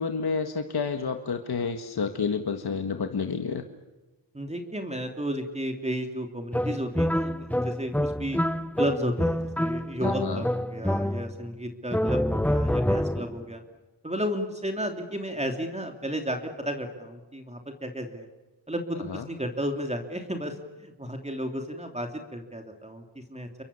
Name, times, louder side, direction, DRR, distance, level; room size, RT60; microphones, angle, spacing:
voice 1, 0.0-3.6 10.0-10.4 19.1-19.2, left 5 dB, 55° left, 6 dB, 1.8 m, -30 dB
voice 2, 4.3-8.4 8.8-13.6 14.0-18.3 18.7-23.5, equal, 15° right, 4 dB, 3.0 m, -33 dB
sound 1, 6.5-11.5 11.9-13.4, equal, 5° left, 0.7 m, -27 dB
30.0 x 23.5 x 7.0 m, 1.2 s
cardioid pair, 80°, 47 cm